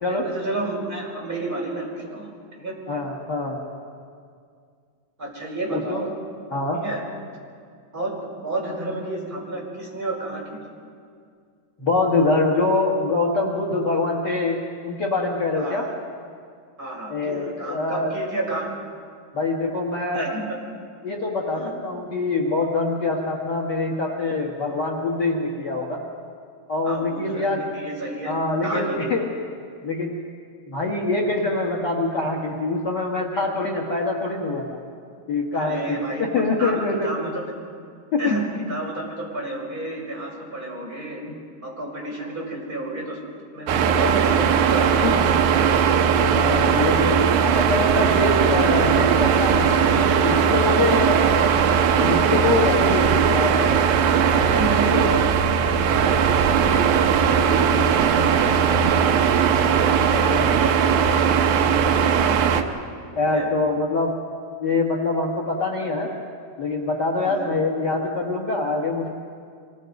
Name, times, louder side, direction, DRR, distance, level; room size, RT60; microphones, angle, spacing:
voice 1, 0.1-2.3 2.6-2.8 5.2-6.1 6.8-7.0 7.9-10.4 15.6-15.8 16.8-18.7 20.1-20.6 21.5-21.7 26.8-28.3 28.6-29.0 35.5-37.4 38.2-41.2 41.6-43.2 43.5-45.3 54.5-59.2 59.7-61.2 61.7-62.4 63.3-63.5 67.2-67.6, right 2 dB, 20° right, -3 dB, 5.4 m, -31 dB
voice 2, 2.9-3.6 5.7-6.0 6.5-6.8 11.8-14.6 14.8-15.9 17.1-18.1 19.3-20.3 21.0-26.0 26.7-27.6 28.2-29.3 29.8-30.2 30.7-34.7 35.3-37.1 38.1-38.3 45.0-45.2 46.1-51.4 52.0-53.8 54.3-55.0 60.1-60.5 63.1-64.1 64.6-66.1 66.6-69.1, left 3 dB, 85° left, 1 dB, 0.9 m, -24 dB
sound 1, 43.7-62.6, right 7 dB, 70° right, 2.5 m, -19 dB
26.0 x 21.0 x 5.3 m, 2.2 s
omnidirectional pair, 4.9 m